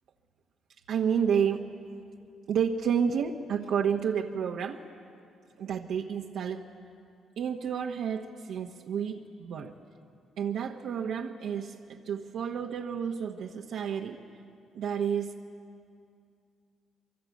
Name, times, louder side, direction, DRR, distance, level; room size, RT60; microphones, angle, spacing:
voice 1, 0.9-1.7 2.5-4.8 5.6-6.6 7.4-9.7 10.4-14.2 14.7-15.3, right 7 dB, 75° right, 0 dB, 1.2 m, -30 dB
24.0 x 23.5 x 8.4 m, 2.4 s
cardioid pair, 90°, 0 cm